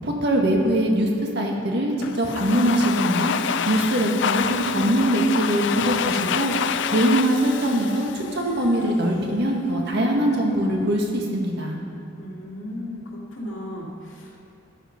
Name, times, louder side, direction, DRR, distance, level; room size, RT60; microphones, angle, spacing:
voice 1, 0.0-1.1 1.3-3.3 3.7-6.5 6.9-11.8, right 1 dB, 60° right, 0 dB, 1.9 m, -22 dB
Domestic sounds home sounds, 2.0-8.9, left 7 dB, 65° left, 0.5 m, -27 dB
voice 2, 12.2-14.5, left 1 dB, 85° left, -5 dB, 2.4 m, -36 dB
13.0 x 10.5 x 5.3 m, 2.7 s
head